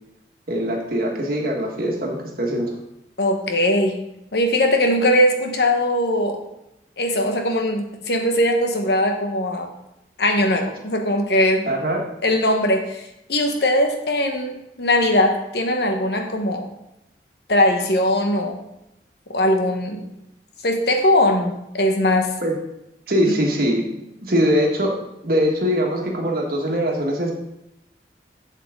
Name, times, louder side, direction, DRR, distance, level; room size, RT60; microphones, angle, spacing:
voice 1, 0.5-2.8 11.7-12.1 22.4-22.5 23.1-23.9 24.2-25.0 25.2-27.3, equal, 55° right, 0 dB, 1.7 m, -22 dB
voice 2, 3.2-4.0 4.3-6.4 7.0-9.7 10.2-11.7 12.2-16.7 17.5-18.6 19.3-20.0 20.6-22.3 23.2-23.3, left 1 dB, 65° left, 4 dB, 1.2 m, -20 dB
8.0 x 7.5 x 3.7 m, 0.86 s
head